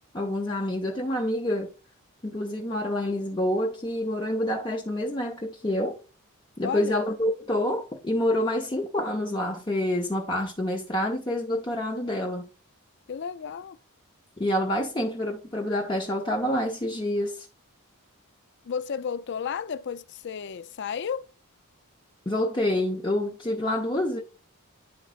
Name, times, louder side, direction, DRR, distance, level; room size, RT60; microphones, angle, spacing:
voice 1, 0.1-1.7 2.2-6.0 6.6-12.5 14.4-17.5 22.3-24.2, left 1 dB, 20° left, 0.7 m, -27 dB
voice 2, 6.6-7.0 13.1-13.8 18.6-21.3, left 7 dB, 50° left, 0.4 m, -33 dB
10.0 x 3.9 x 2.4 m
head